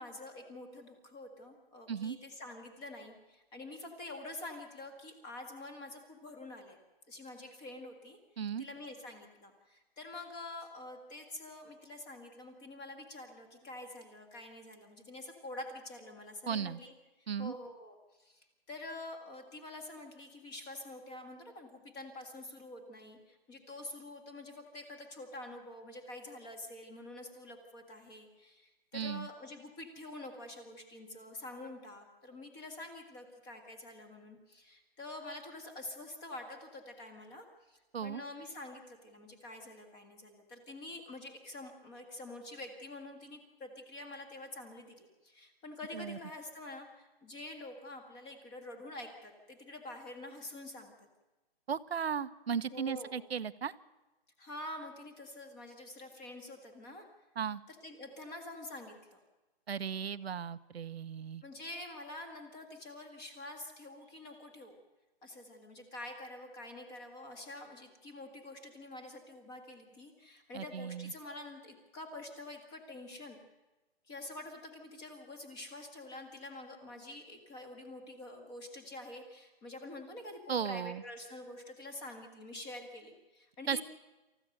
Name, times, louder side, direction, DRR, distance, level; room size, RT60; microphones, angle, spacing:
voice 1, 0.0-6.8 7.1-8.2 8.6-50.9 52.7-53.2 54.4-57.1 57.7-59.2 61.4-64.8 65.2-73.4 74.1-83.8, left 2 dB, 15° left, 5 dB, 1.7 m, -47 dB
voice 2, 16.5-16.8 17.3-17.5 28.9-29.3 37.9-38.2 45.9-46.2 51.7-53.7 57.4-57.6 59.7-61.4 70.5-71.1 80.5-81.0 83.7-83.8, right 7 dB, 80° right, 13 dB, 1.0 m, -36 dB
28.0 x 14.5 x 6.6 m, 1.1 s
hypercardioid pair, 165°, 31 cm